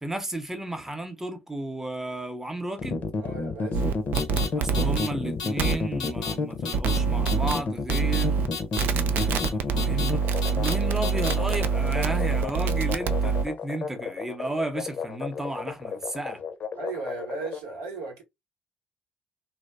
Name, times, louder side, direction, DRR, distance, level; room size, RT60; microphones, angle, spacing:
voice 1, 0.0-3.1 4.5-8.4 9.1-16.4, right 1 dB, 10° right, 0.7 m, -33 dB
sound 1, 2.8-17.6, left 4 dB, 50° left, 0.5 m, -31 dB
voice 2, 3.2-3.8 16.8-18.2, right 4 dB, 80° right, 0.9 m, -36 dB
sound 2, 3.7-5.0 5.6-5.8 6.7-7.5 7.9-8.5 8.8-13.5, right 6 dB, 65° right, 0.3 m, -25 dB
sound 3, 4.1-4.5 4.7-5.1 5.4-5.7 6.0-6.3 6.6-7.0 7.3-7.6 7.9-8.2 8.5-8.8 9.2-9.5 9.8-10.1 10.4-10.7 11.0-11.3, left 5 dB, 90° left, 0.6 m, -33 dB
2.5 x 2.1 x 2.4 m
hypercardioid pair, 50°, 4 cm